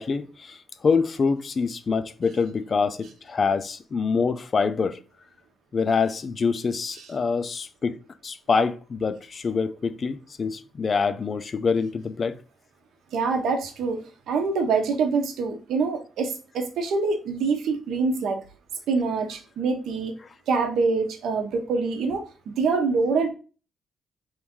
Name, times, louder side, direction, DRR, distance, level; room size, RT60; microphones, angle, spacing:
voice 1, 0.0-5.0 5.7-8.0 8.2-12.4, left 5 dB, 40° left, 0.4 m, -25 dB
voice 2, 13.1-18.4 18.9-20.1 20.5-23.3, right 4 dB, 75° right, 0.7 m, -25 dB
3.0 x 2.6 x 3.5 m
cardioid pair, 90°, 0 cm